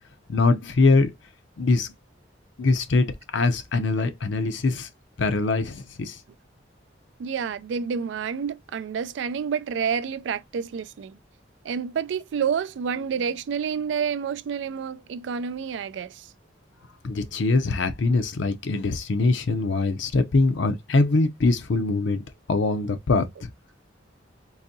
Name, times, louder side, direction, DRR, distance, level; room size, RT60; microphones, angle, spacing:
voice 1, 0.3-1.1 1.6-1.9 2.6-4.9 5.2-6.2 17.0-23.5, left 3 dB, 80° left, 0.5 m, -23 dB
voice 2, 7.2-11.2 11.6-16.3, right 7 dB, 75° right, 0.3 m, -29 dB
3.9 x 2.6 x 2.6 m
head